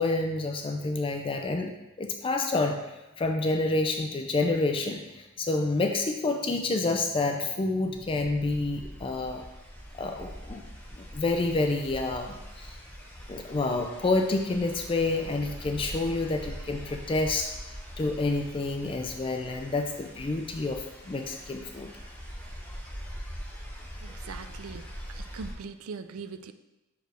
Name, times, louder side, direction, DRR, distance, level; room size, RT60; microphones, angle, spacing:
voice 1, 0.0-2.8 3.2-9.4 9.9-10.6 11.0-12.7 13.3-21.9, left 2 dB, 25° left, 4 dB, 0.4 m, -28 dB
sound 1, 7.8-25.5, equal, 10° left, 1.0 m, -43 dB
voice 2, 24.0-24.8 25.1-26.5, right 5 dB, 90° right, 10 dB, 0.4 m, -41 dB
6.2 x 4.7 x 3.3 m, 1.0 s
head